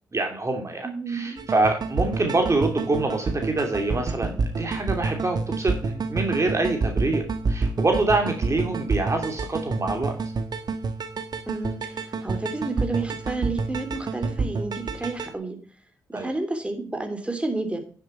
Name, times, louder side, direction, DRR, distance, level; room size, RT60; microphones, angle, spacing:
voice 1, 0.1-10.1 16.1-16.3, right 2 dB, 35° right, 3 dB, 2.8 m, -25 dB
voice 2, 0.8-1.4 11.5-15.6 16.1-17.8, right 3 dB, 15° right, 5 dB, 3.1 m, -30 dB
sound 1, 1.4-15.3, right 4 dB, 55° right, 1.4 m, -29 dB
10.0 x 7.6 x 4.4 m, 0.43 s
hypercardioid pair, 40°, 8 cm